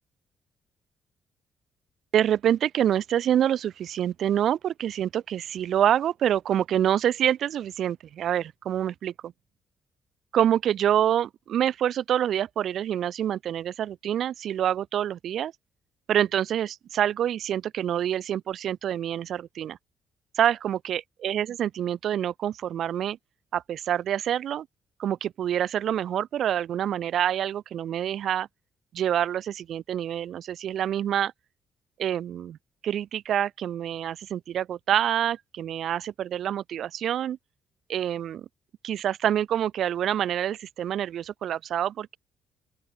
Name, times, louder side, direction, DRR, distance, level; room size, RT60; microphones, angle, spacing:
voice 1, 2.1-9.3 10.3-15.5 16.1-19.8 20.3-23.2 23.5-24.7 25.0-28.5 28.9-31.3 32.0-32.6 32.8-37.4 37.9-38.5 38.8-42.2, right 10 dB, 70° right, 1.7 m, -26 dB
open air
cardioid pair, 90°, 0 cm